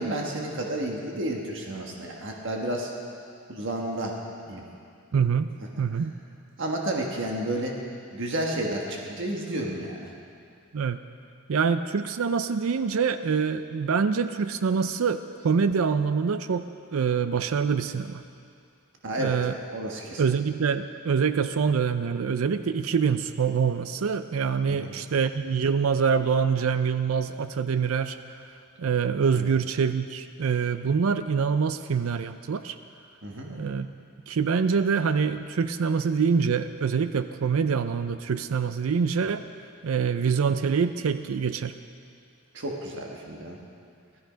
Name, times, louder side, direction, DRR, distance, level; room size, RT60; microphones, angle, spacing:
voice 1, 0.0-2.9 3.5-4.2 4.5-4.6 6.6-7.8 8.1-10.1 19.0-19.3 19.7-20.2 24.7-24.9 29.3-29.5 33.2-33.6 40.3-40.4 42.5-43.6, right 1 dB, 60° right, 0 dB, 1.5 m, -31 dB
voice 2, 5.1-5.5 5.8-6.1 10.7-11.0 11.5-18.2 19.2-19.6 20.2-28.2 28.8-32.8 33.5-33.9 34.3-39.5 39.8-41.7, right 6 dB, 80° right, 11 dB, 0.5 m, -25 dB
16.5 x 13.0 x 5.1 m, 2.4 s
head